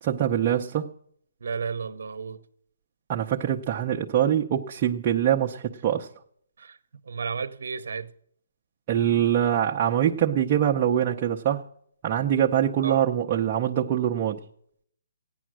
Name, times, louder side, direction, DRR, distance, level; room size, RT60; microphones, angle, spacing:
voice 1, 0.0-0.9 3.1-6.1 8.9-11.6 12.0-14.4, right 10 dB, 25° right, 0.6 m, -24 dB
voice 2, 1.4-2.4 6.6-6.8 7.0-8.1 12.8-13.0, right 5 dB, 70° right, 0.7 m, -32 dB
15.5 x 9.9 x 6.2 m
hypercardioid pair, 170°, 0 cm